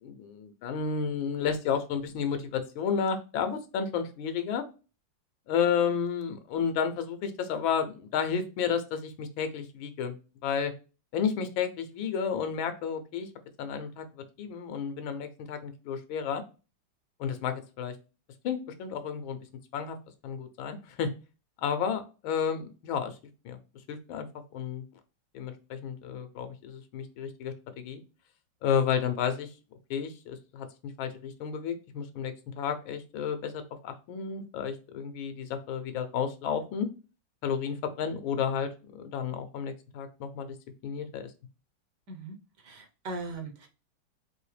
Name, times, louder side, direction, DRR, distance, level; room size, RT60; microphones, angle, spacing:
voice 1, 0.0-4.7 5.5-10.1 10.4-10.7 11.1-13.3 13.6-14.0 14.4-16.4 17.2-17.9 18.4-19.4 19.7-20.0 20.2-21.1 21.6-23.1 23.4-23.6 23.9-24.3 24.5-24.8 25.3-28.0 28.6-29.5 29.9-30.7 31.0-36.9 37.4-40.5 40.8-41.3, left 7 dB, 90° left, 9 dB, 1.5 m, -31 dB
voice 2, 42.6-43.7, right 3 dB, 60° right, 3 dB, 1.5 m, -39 dB
4.9 x 2.7 x 3.2 m, 0.32 s
omnidirectional pair, 2.2 m